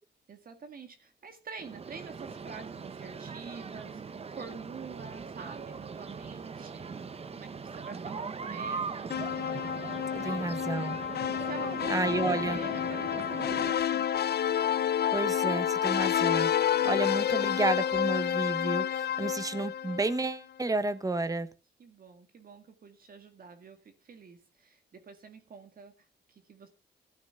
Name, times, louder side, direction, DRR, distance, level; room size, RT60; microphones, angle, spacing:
voice 1, 0.3-9.1 10.0-11.1 11.4-14.1 21.8-26.7, right 5 dB, 55° right, 2.0 m, -47 dB
sound 1, 1.6-13.7, right 5 dB, 35° right, 0.9 m, -40 dB
sound 2, 9.1-20.3, left 9 dB, 65° left, 0.6 m, -29 dB
voice 2, 10.2-11.0 11.9-12.6 15.1-16.5 16.8-21.5, right 3 dB, 20° right, 1.2 m, -31 dB
14.0 x 6.1 x 7.9 m
wide cardioid pair, 175°, 18 cm